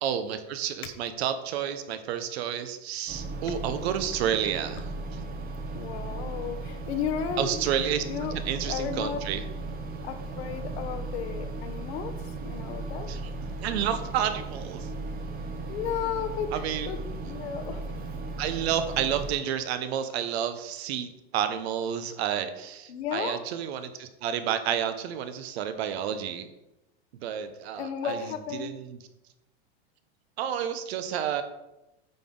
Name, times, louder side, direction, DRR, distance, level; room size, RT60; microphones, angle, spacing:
voice 1, 0.0-5.2 7.4-8.0 8.3-9.4 13.1-13.2 13.6-14.9 16.5-16.9 18.4-26.5 27.2-29.0 30.4-31.4, right 9 dB, 80° right, 10 dB, 0.9 m, -30 dB
sound 1, 3.1-19.3, right 3 dB, 30° right, 0.8 m, -36 dB
voice 2, 5.7-7.6 8.0-8.4 8.7-9.2 10.0-12.1 12.4-13.1 15.7-17.9 22.9-23.4 27.8-28.7, left 8 dB, 85° left, 8 dB, 1.0 m, -34 dB
8.9 x 4.0 x 3.7 m, 0.95 s
supercardioid pair, 140°, 31 cm